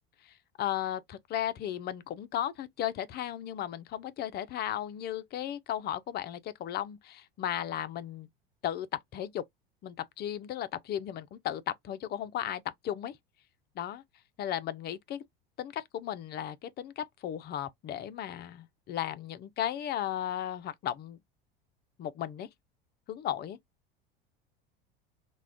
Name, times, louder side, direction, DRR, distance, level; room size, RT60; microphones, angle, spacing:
voice 1, 0.2-8.3 8.6-9.4 9.8-13.2 13.8-14.0 14.4-15.2 15.6-21.2 22.0-22.5 23.1-23.6, left 11 dB, 35° left, 0.4 m, -35 dB
2.3 x 2.2 x 3.4 m
hypercardioid pair, 80°, 29 cm